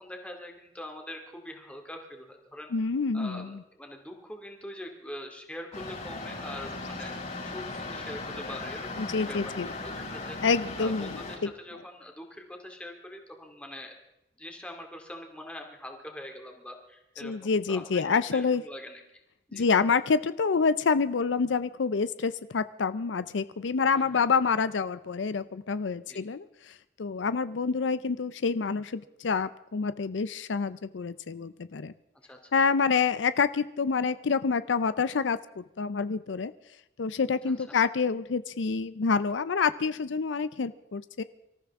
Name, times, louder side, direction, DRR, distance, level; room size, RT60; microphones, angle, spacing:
voice 1, 0.0-2.7 3.1-7.2 7.4-9.4 9.8-10.4 10.8-13.9 14.4-18.0 18.3-19.0 19.5-19.7 23.9-24.2 26.1-26.2 32.2-32.5 37.5-37.6, left 1 dB, 5° left, 2 dB, 2.3 m, -43 dB
voice 2, 2.7-3.6 9.0-9.7 10.4-11.5 17.2-18.6 19.5-31.9 32.5-36.5 37.0-41.2, left 5 dB, 85° left, 14 dB, 0.5 m, -27 dB
sound 1, 5.7-11.4, left 3 dB, 45° left, 5.9 m, -38 dB
25.0 x 14.0 x 3.6 m, 0.88 s
head